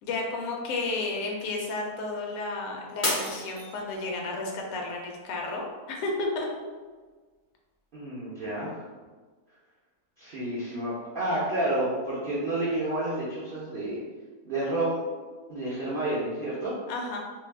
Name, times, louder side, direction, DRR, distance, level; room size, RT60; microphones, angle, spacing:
voice 1, 0.0-6.5 16.9-17.2, left 3 dB, 70° left, 0 dB, 1.0 m, -32 dB
Shatter, 3.0-4.3 4.8-5.3 5.8-5.9, left 1 dB, 40° left, 0.5 m, -31 dB
voice 2, 7.9-8.8 10.2-14.0 14.4-15.0 15.5-16.7, right 1 dB, 65° right, -7 dB, 0.5 m, -30 dB
2.7 x 2.3 x 3.3 m, 1.4 s
omnidirectional pair, 1.6 m